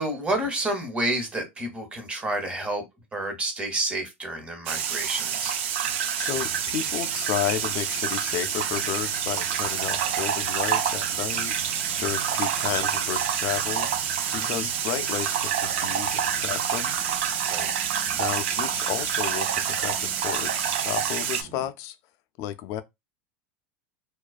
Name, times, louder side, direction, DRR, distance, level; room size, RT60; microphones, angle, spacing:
voice 1, 0.0-2.8 3.1-5.5 14.4-14.7 17.4-17.7, right 1 dB, 20° right, 1.0 m, -29 dB
sound 1, 4.7-21.4, right 8 dB, 75° right, 0.4 m, -27 dB
voice 2, 6.2-11.5 12.0-13.9 14.3-17.0 18.1-21.9 22.4-22.8, left 12 dB, 50° left, 0.4 m, -32 dB
sound 2, 6.3-21.7, right 4 dB, 50° right, 0.8 m, -46 dB
2.3 x 2.1 x 2.4 m
hypercardioid pair, 95°, 7 cm